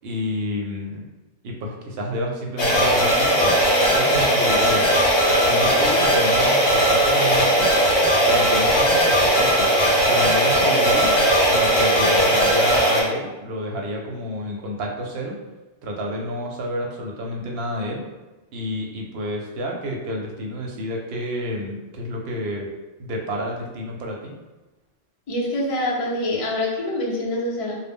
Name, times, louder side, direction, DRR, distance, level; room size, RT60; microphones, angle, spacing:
voice 1, 0.0-1.0 1.4-3.6 3.9-4.9 5.4-7.7 8.2-9.7 10.1-15.4 15.8-18.0 18.5-22.7 23.0-24.3, equal, 65° right, 0 dB, 0.7 m, -29 dB
sound 1, 2.6-13.0, equal, 75° left, 1.0 m, -18 dB
voice 2, 25.3-27.8, left 1 dB, 40° left, -4 dB, 0.5 m, -25 dB
2.0 x 2.0 x 3.4 m, 1.1 s
omnidirectional pair, 1.2 m